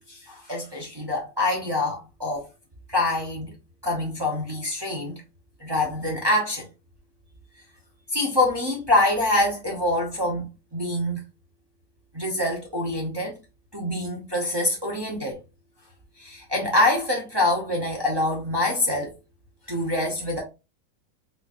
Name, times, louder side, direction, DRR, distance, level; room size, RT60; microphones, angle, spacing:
voice 1, 0.0-2.5 2.9-3.5 3.8-5.1 5.6-6.7 8.1-11.2 12.1-13.4 13.7-15.4 16.2-19.2 19.7-20.4, left 1 dB, 25° right, 0.6 m, -25 dB
3.6 x 3.2 x 2.4 m
omnidirectional pair, 1.6 m